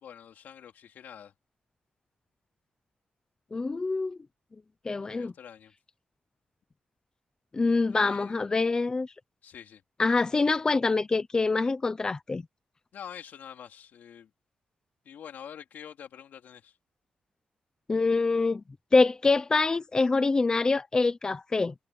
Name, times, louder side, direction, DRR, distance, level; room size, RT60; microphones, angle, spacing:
voice 1, 0.0-1.3 5.0-5.7 7.9-8.4 9.4-9.8 12.9-14.3 15.1-16.7, left 8 dB, 85° left, 3.7 m, -46 dB
voice 2, 3.5-4.2 4.8-5.3 7.5-9.1 10.0-12.4 17.9-18.6 18.9-21.7, left 3 dB, 25° left, 0.9 m, -25 dB
wide cardioid pair, 135°, 3 cm